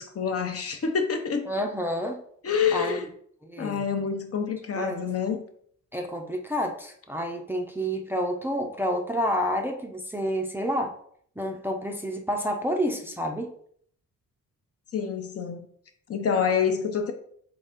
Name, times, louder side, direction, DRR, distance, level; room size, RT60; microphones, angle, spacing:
voice 1, 0.0-1.5 2.4-3.1 3.6-5.4 14.9-15.7 16.1-17.1, left 6 dB, 50° left, 5 dB, 0.7 m, -27 dB
voice 2, 1.5-2.2 2.7-3.0 3.4-3.8 4.8-5.1 5.9-10.9 11.4-13.5, equal, 5° right, 2 dB, 0.5 m, -29 dB
4.0 x 3.3 x 3.6 m, 0.63 s
cardioid pair, 110°, 32 cm